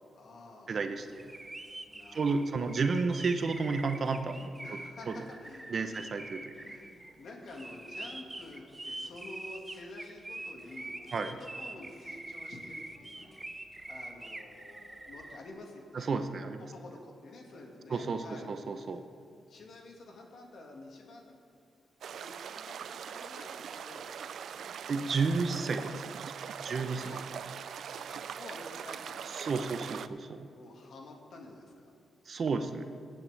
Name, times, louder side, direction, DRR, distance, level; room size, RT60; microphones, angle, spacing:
voice 1, 0.1-0.8 1.9-2.9 3.7-3.8 4.6-6.1 6.6-6.9 7.2-13.4 13.9-16.1 16.7-18.5 18.9-19.2 19.5-21.4 22.1-24.6 26.6-27.3 27.9-29.9 30.5-31.9, left 2 dB, 70° left, 1 dB, 1.9 m, -50 dB
voice 2, 0.7-1.2 2.1-4.5 5.1-5.2 5.7-6.5 11.1-11.3 15.9-16.6 17.9-19.0 24.9-25.9 26.2-26.3 26.6-27.2 29.3-30.5 32.3-32.8, right 4 dB, 55° right, 8 dB, 0.8 m, -32 dB
sound 1, 1.1-15.4, right 2 dB, 20° right, 0.8 m, -44 dB
sound 2, 22.0-30.1, right 8 dB, 75° right, 0.3 m, -42 dB
18.5 x 8.6 x 3.4 m, 2.4 s
cardioid pair, 85°, 0 cm